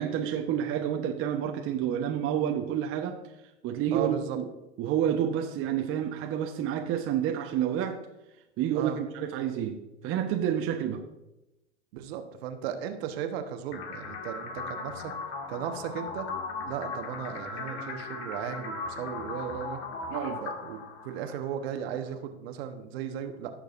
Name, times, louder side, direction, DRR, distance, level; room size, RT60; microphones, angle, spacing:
voice 1, 0.0-3.2 3.6-4.5 4.8-8.0 8.6-11.0 20.1-20.4, right 9 dB, 35° right, 3 dB, 1.0 m, -29 dB
voice 2, 3.9-4.4 8.7-9.0 11.9-15.1 15.5-16.3 16.7-19.8 20.4-23.5, right 9 dB, 60° right, 6 dB, 1.3 m, -36 dB
sound 1, 13.7-21.7, left 3 dB, 65° left, 1.7 m, -38 dB
17.0 x 6.6 x 2.6 m, 0.94 s
hypercardioid pair, 100°, 36 cm